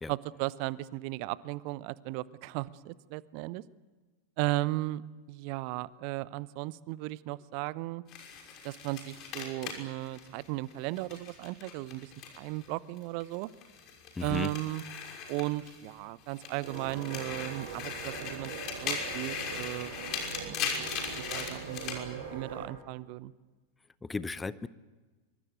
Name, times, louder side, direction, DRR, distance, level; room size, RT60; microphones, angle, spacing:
voice 1, 0.1-3.6 4.4-5.0 5.3-8.0 8.6-12.1 12.4-13.5 14.2-14.8 15.3-19.9 20.4-20.9 21.3-23.3, right 19 dB, 45° right, 20 dB, 0.7 m, -36 dB
sound 1, 8.1-12.7 13.0-15.9 16.3-22.0, left 6 dB, 35° left, 6.0 m, -39 dB
voice 2, 14.2-14.5 24.0-24.7, left 3 dB, 10° left, 17 dB, 0.7 m, -35 dB
sound 2, 16.6-22.7, right 5 dB, 60° right, 7.9 m, -42 dB
25.5 x 24.0 x 8.2 m, 1.3 s
figure-of-eight pair, 90°, 0 cm